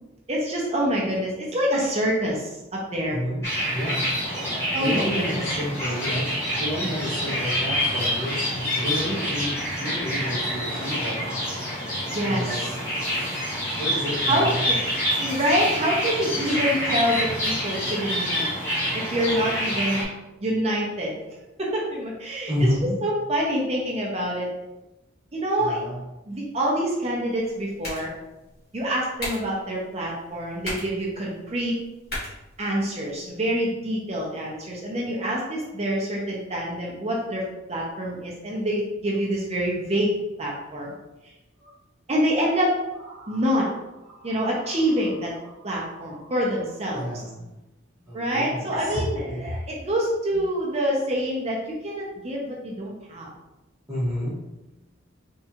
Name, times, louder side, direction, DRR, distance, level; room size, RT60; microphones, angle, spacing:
voice 1, 0.3-3.2 4.3-4.4 4.7-5.4 12.1-12.5 14.3-14.8 15.2-18.5 18.9-20.0 20.4-22.7 23.0-24.5 25.3-25.8 26.3-28.1 28.7-31.7 32.6-40.9 42.1-42.8 43.3-43.7 44.2-45.3 45.6-47.0 48.1-53.3, equal, 30° right, -3 dB, 0.7 m, -26 dB
voice 2, 3.1-4.2 4.7-9.5 9.8-11.3 12.2-12.6 13.8-14.6 22.5-23.0 25.6-26.0 46.9-47.5 48.0-49.0 49.3-49.4 53.9-54.4, equal, 15° right, -11 dB, 1.4 m, -30 dB
sound 1, 3.4-20.0, equal, 15° left, 1.5 m, -27 dB
sound 2, 27.3-33.3, left 1 dB, 50° left, 1.4 m, -39 dB
sound 3, 39.1-39.2 39.6-39.8 41.6-41.8 42.6-46.9 48.1-48.2 48.7-49.8, equal, 70° right, 0.9 m, -39 dB
3.6 x 3.2 x 2.9 m, 0.97 s
head